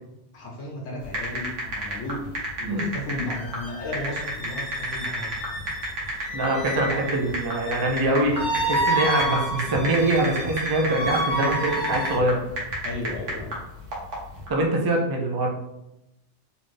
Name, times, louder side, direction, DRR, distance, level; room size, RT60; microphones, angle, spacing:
voice 1, 0.3-2.2 2.6-5.4 12.8-13.6, left 1 dB, 75° left, -1 dB, 1.3 m, -34 dB
sound 1, 1.0-14.5, right 1 dB, 75° right, 1.5 m, -32 dB
sound 2, 3.4-12.2, right 1 dB, 45° left, 0.4 m, -30 dB
voice 2, 6.3-12.4 14.5-15.5, right 2 dB, 25° right, -1 dB, 0.5 m, -24 dB
3.9 x 2.6 x 3.3 m, 0.87 s
omnidirectional pair, 1.3 m